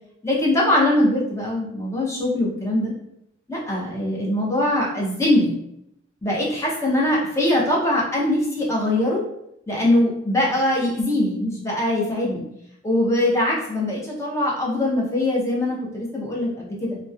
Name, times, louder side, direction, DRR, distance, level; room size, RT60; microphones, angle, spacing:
voice 1, 0.2-2.9 3.5-5.5 6.2-9.2 9.7-12.4 12.8-17.0, left 1 dB, 15° left, -4 dB, 0.6 m, -22 dB
2.9 x 2.0 x 2.3 m, 0.78 s
head